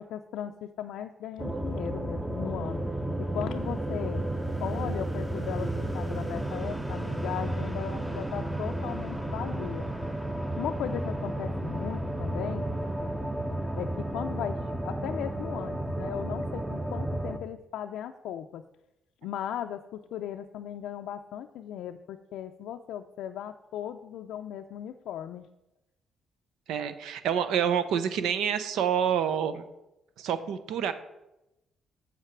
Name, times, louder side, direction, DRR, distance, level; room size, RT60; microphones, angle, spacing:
voice 1, 0.0-2.8 3.2-4.3 4.6-9.9 10.5-12.7 13.8-18.6 19.2-25.5, left 10 dB, 85° left, 5 dB, 0.4 m, -37 dB
sound 1, 1.4-17.4, right 1 dB, 10° right, 0.8 m, -32 dB
voice 2, 26.7-29.6 30.2-30.9, right 8 dB, 85° right, 12 dB, 0.7 m, -27 dB
7.4 x 5.8 x 5.9 m, 0.92 s
cardioid pair, 90°, 0 cm